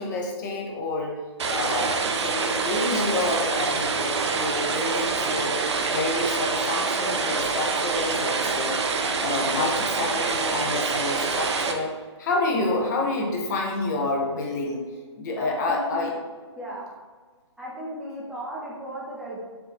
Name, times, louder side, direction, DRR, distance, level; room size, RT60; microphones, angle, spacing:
voice 1, 0.0-5.6 5.9-8.9 9.2-11.9 12.2-14.8 15.2-16.1, left 2 dB, 40° left, 0 dB, 0.8 m, -28 dB
sound 1, 1.4-11.7, right 4 dB, 65° right, 0.5 m, -26 dB
voice 2, 15.4-16.0 16.6-16.9 17.6-19.4, right 1 dB, 5° right, -8 dB, 0.6 m, -36 dB
4.5 x 2.7 x 3.2 m, 1.4 s
figure-of-eight pair, 135°, 15 cm